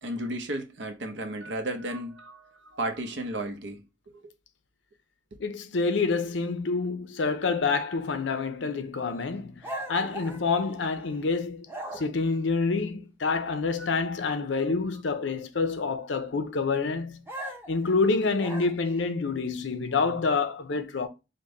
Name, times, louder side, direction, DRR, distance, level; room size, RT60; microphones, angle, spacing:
voice 1, 0.0-3.8 4.1-4.2 5.3-5.4 13.8-13.9 14.6-14.7, right 1 dB, 70° right, 0.9 m, -34 dB
voice 2, 5.4-11.7 11.9-17.2 17.7-21.1, left 4 dB, 75° left, 0.6 m, -27 dB
sound 1, 9.6-11.2 11.7-12.3 17.3-19.1, right 1 dB, 10° right, 0.7 m, -39 dB
5.2 x 2.2 x 3.9 m
head